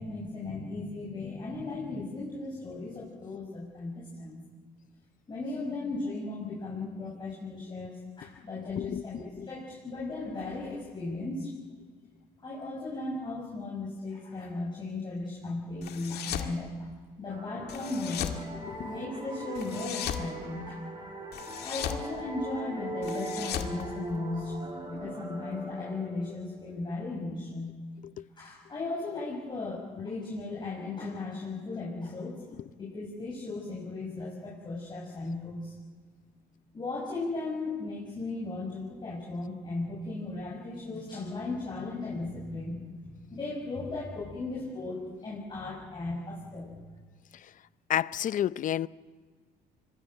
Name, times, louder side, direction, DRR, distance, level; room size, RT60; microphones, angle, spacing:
voice 1, 0.0-4.4 5.3-7.9 8.2-11.5 12.4-16.7 17.2-18.4 18.9-20.8 21.6-24.5 24.9-27.8 28.4-32.4 32.8-35.7 36.7-46.8, left 3 dB, 25° left, 6.7 m, -36 dB
voice 2, 8.7-9.5 18.5-18.9 28.0-28.3 47.9-48.9, left 11 dB, 50° left, 0.6 m, -31 dB
sound 1, 15.8-16.5 17.7-18.4 19.5-20.3 21.3-22.0 23.0-24.5, left 10 dB, 70° left, 2.0 m, -36 dB
sound 2, 17.3-26.7, right 1 dB, 25° right, 6.2 m, -40 dB
24.5 x 20.5 x 9.1 m
cardioid pair, 110°, 17 cm